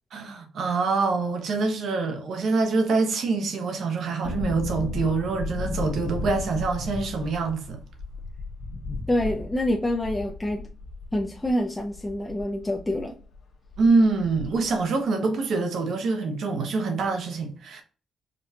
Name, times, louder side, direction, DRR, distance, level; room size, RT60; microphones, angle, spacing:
voice 1, 0.1-7.8 13.8-17.8, right 3 dB, 65° right, 0.9 m, -25 dB
sound 1, 4.2-13.1 13.3-13.4 13.7-14.7 15.0-15.1, left 3 dB, 70° left, 1.1 m, -35 dB
voice 2, 9.1-10.6 11.1-13.1, left 1 dB, 10° left, 0.5 m, -26 dB
5.1 x 2.3 x 2.8 m
cardioid pair, 90°, 0 cm